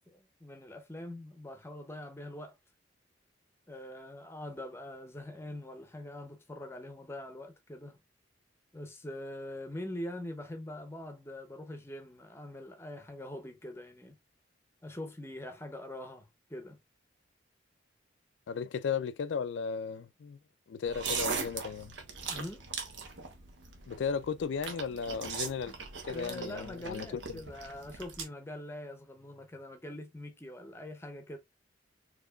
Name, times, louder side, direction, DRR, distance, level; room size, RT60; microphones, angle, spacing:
voice 1, 0.0-2.6 3.7-8.0 8.7-14.2 14.8-16.8 22.3-22.6 25.7-25.8 26.1-31.4, left 1 dB, 15° left, 0.6 m, -43 dB
voice 2, 18.5-20.4 20.7-21.9 23.9-25.7 26.1-27.2, left 6 dB, 85° left, 0.4 m, -35 dB
sound 1, 20.9-28.2, right 5 dB, 85° right, 1.0 m, -40 dB
4.6 x 2.9 x 2.3 m
head